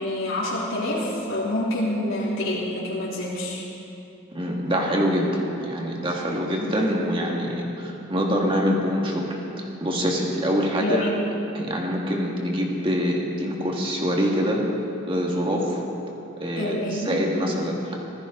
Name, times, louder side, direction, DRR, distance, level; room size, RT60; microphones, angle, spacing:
voice 1, 0.0-3.7 10.8-11.2 16.6-17.2, left 1 dB, 85° left, -7 dB, 3.3 m, -27 dB
voice 2, 4.3-11.1 11.5-14.6 15.1-15.8 16.4-17.9, equal, 25° right, -1 dB, 2.0 m, -25 dB
24.5 x 15.0 x 3.9 m, 2.8 s
head